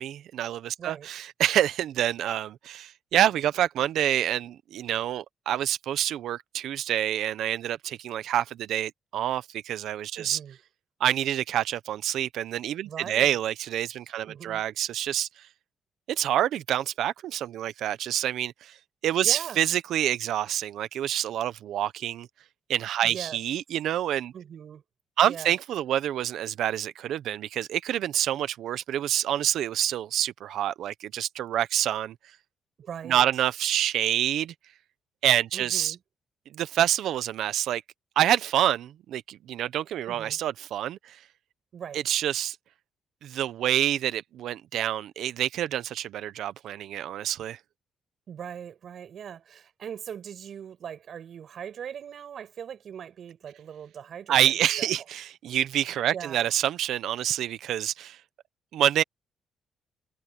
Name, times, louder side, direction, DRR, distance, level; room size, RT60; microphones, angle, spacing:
voice 1, 0.0-10.4 11.0-15.5 16.1-18.8 19.0-22.3 22.7-24.3 25.2-32.2 33.0-34.5 35.2-35.9 36.5-37.8 38.2-41.2 41.9-42.6 43.2-47.6 54.3-58.2 58.7-59.0, right 11 dB, 75° right, 0.9 m, -27 dB
voice 2, 0.8-1.1 10.2-10.6 12.8-13.4 14.3-14.6 19.2-19.6 23.0-23.4 24.3-24.8 25.2-25.5 32.8-33.3 35.5-36.0 40.1-40.4 41.7-42.0 48.3-54.9 56.1-56.5, right 8 dB, 60° right, 5.8 m, -40 dB
cardioid pair, 90°, 0 cm